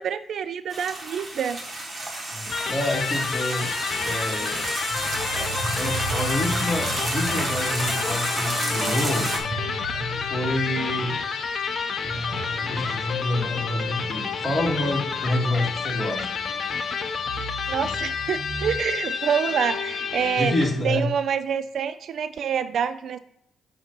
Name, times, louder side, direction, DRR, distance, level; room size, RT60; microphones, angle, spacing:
voice 1, 0.0-1.6 17.7-20.5 20.8-23.2, right 7 dB, 65° right, 12 dB, 0.3 m, -26 dB
sound 1, 0.7-9.4, right 2 dB, 25° right, 1.5 m, -30 dB
voice 2, 2.3-3.7 4.0-4.6 5.3-9.3 10.2-11.1 12.6-16.2 20.4-21.1, left 1 dB, 15° left, -3 dB, 2.4 m, -27 dB
Electric guitar, 2.5-20.8, left 6 dB, 50° left, 0.6 m, -30 dB
sound 2, 4.9-11.3 11.7-11.8 12.0-16.7 17.2-18.8, right 1 dB, 45° right, 1.1 m, -36 dB
7.7 x 2.7 x 6.0 m, 0.74 s
cardioid pair, 90°, 0 cm